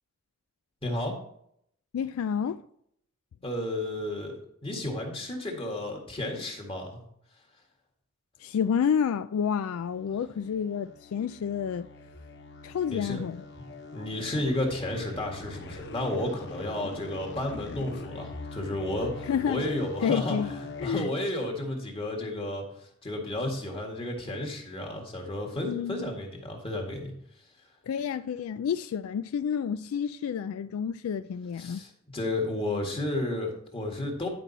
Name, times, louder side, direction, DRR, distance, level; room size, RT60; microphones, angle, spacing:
voice 1, 0.8-1.1 3.4-4.4 4.6-7.0 12.9-13.2 13.6-13.7 13.9-20.4 20.8-27.1 31.6-34.3, left 1 dB, 25° left, 1.9 m, -32 dB
voice 2, 1.9-2.6 8.4-11.9 12.6-13.4 19.3-19.6 20.0-20.5 20.8-21.1 25.6-26.1 27.9-31.8, left 7 dB, 75° left, 0.3 m, -29 dB
sound 1, 9.6-20.9, left 3 dB, 55° left, 0.8 m, -43 dB
11.0 x 5.4 x 4.1 m
head